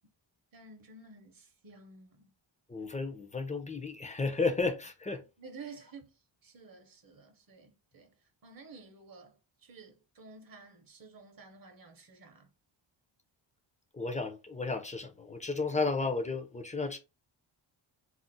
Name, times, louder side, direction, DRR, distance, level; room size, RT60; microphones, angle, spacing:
voice 1, 0.5-2.3 5.2-6.1 6.4-8.1 8.4-12.5, right 4 dB, 45° right, 0.8 m, -52 dB
voice 2, 2.7-5.2 13.9-17.0, left 3 dB, 15° left, 0.5 m, -33 dB
2.5 x 2.0 x 3.9 m
cardioid pair, 95°, 47 cm